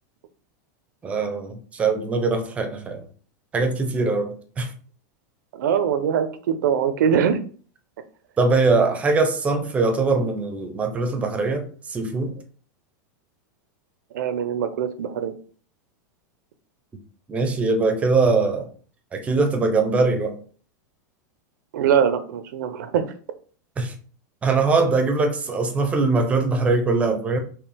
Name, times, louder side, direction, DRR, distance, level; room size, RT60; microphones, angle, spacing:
voice 1, 1.0-3.0 3.5-4.7 8.4-12.3 17.3-18.7 19.1-20.4 23.8-23.9 24.4-27.4, right 3 dB, 15° right, 0.7 m, -22 dB
voice 2, 5.5-7.4 14.1-15.4 21.7-23.1, right 8 dB, 80° right, 0.7 m, -22 dB
4.8 x 3.0 x 3.4 m
supercardioid pair, 165°, 10 cm